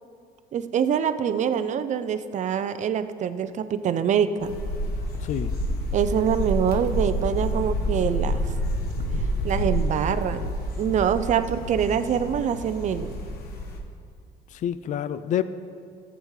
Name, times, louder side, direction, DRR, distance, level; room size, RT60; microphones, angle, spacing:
voice 1, 0.5-4.5 5.9-8.4 9.4-13.1, right 8 dB, 45° right, 12 dB, 0.5 m, -25 dB
sound 1, 4.4-13.8, equal, 65° left, 1.2 m, -28 dB
voice 2, 5.2-5.6 14.5-15.4, left 10 dB, 45° left, 13 dB, 0.4 m, -28 dB
14.0 x 8.1 x 3.2 m, 2.3 s
cardioid pair, 110°, 17 cm